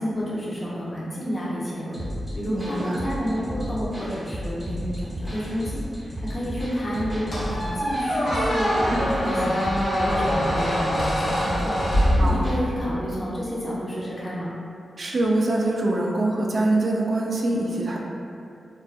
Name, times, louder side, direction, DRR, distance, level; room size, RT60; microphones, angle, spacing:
voice 1, 0.0-2.0 2.3-5.8 6.2-9.7 10.1-11.7 12.2-14.5, equal, 30° left, -7 dB, 0.6 m, -30 dB
sound 1, 1.9-12.6, equal, 5° right, 0.6 m, -33 dB
voice 2, 2.5-3.0 12.2-12.4 15.0-18.0, right 2 dB, 45° right, -1 dB, 0.3 m, -24 dB
Squeak, 7.3-12.8, equal, 65° left, 0.8 m, -24 dB
2.5 x 2.3 x 2.4 m, 2.5 s
wide cardioid pair, 95°, 0 cm